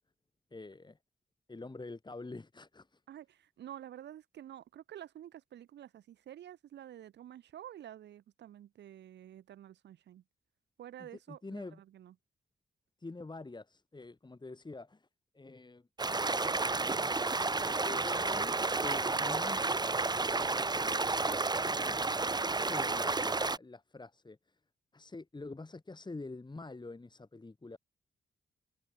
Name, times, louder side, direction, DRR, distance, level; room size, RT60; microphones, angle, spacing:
voice 1, 0.5-1.0 1.5-3.0 11.0-11.8 13.0-15.1 15.3-15.9 16.8-17.1 17.5-20.0 21.4-24.4 24.9-27.8, left 3 dB, 25° left, 3.5 m, -46 dB
voice 2, 3.1-10.2 10.8-12.1, right 11 dB, 85° right, 2.3 m, -50 dB
sound 1, 16.0-23.6, right 3 dB, 25° right, 1.1 m, -31 dB
cardioid pair, 65°, 17 cm